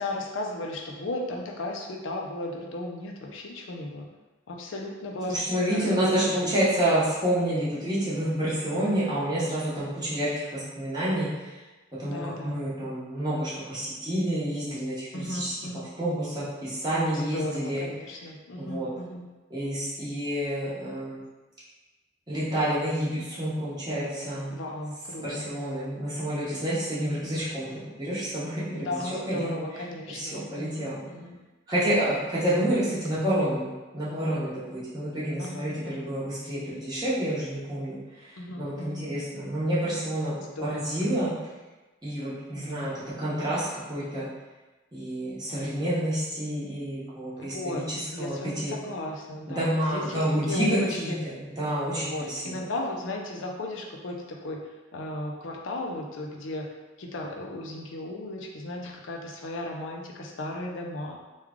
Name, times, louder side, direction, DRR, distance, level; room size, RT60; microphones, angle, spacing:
voice 1, 0.0-4.1 4.5-6.5 12.0-12.6 15.1-15.9 17.1-19.3 23.1-23.3 24.5-25.4 27.2-27.8 28.8-31.4 32.4-32.8 35.4-36.1 38.4-39.1 40.4-40.9 42.5-42.8 47.4-47.8 48.1-51.2 52.0-54.6 54.9-56.7 57.0-61.2, left 1 dB, 90° left, 0 dB, 0.5 m, -35 dB
voice 2, 5.3-11.6 12.0-15.5 16.0-17.8 18.6-18.9 19.5-21.2 22.3-24.6 25.2-28.9 29.3-29.5 30.1-31.0 31.7-40.4 40.6-41.3 42.0-44.3 44.9-48.7 49.6-52.4, right 1 dB, 20° right, -9 dB, 1.1 m, -29 dB
3.1 x 2.3 x 3.6 m, 1.2 s
head